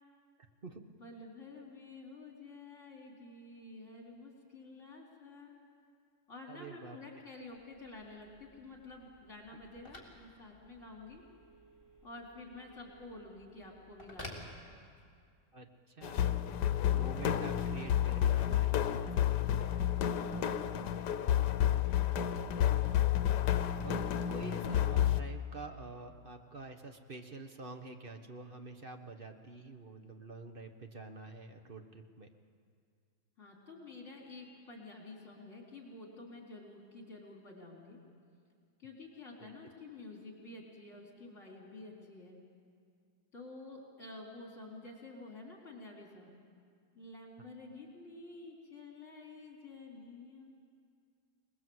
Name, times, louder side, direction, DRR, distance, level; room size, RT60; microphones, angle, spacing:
voice 1, 1.0-5.5 6.3-11.2 12.0-14.5 20.1-20.8 33.4-38.0 38.8-42.4 43.3-46.3 46.9-50.4, left 2 dB, 45° left, -1 dB, 4.2 m, -50 dB
voice 2, 6.5-7.0 15.5-19.9 23.8-32.3 39.4-39.5, right 3 dB, 35° right, 5 dB, 1.3 m, -48 dB
Telephone, 7.5-15.3, left 1 dB, 15° left, 3.6 m, -54 dB
sound 1, 16.0-25.2, left 10 dB, 80° left, 1.4 m, -30 dB
26.0 x 20.0 x 7.9 m, 2.2 s
omnidirectional pair, 1.8 m